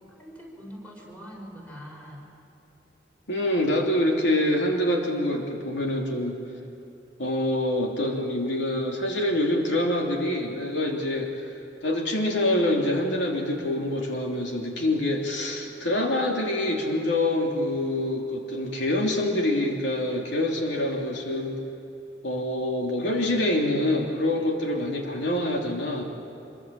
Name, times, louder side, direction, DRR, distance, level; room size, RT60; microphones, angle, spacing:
voice 1, 0.2-2.2, equal, 10° left, -2 dB, 5.3 m, -43 dB
voice 2, 3.3-6.3 7.2-11.3 11.8-21.6 22.2-26.0, left 1 dB, 80° left, 0 dB, 3.1 m, -26 dB
25.5 x 23.5 x 7.6 m, 2.9 s
head